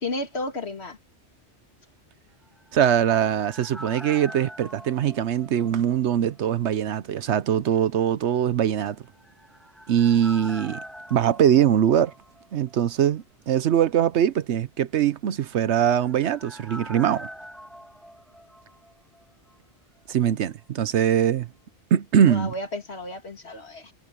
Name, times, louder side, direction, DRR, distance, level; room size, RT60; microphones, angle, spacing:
voice 1, 0.0-1.0 22.2-23.9, left 2 dB, 65° left, 2.6 m, -32 dB
sound 1, 2.4-6.3 6.5-6.6 9.0-12.8 13.0-13.1 15.4-19.2 19.5-19.6, equal, ahead, 2.5 m, -44 dB
voice 2, 2.7-9.0 9.9-10.8 11.1-12.1 12.5-17.3 20.1-21.5 21.9-22.5, right 9 dB, 75° right, 1.0 m, -22 dB
omnidirectional pair, 1.2 m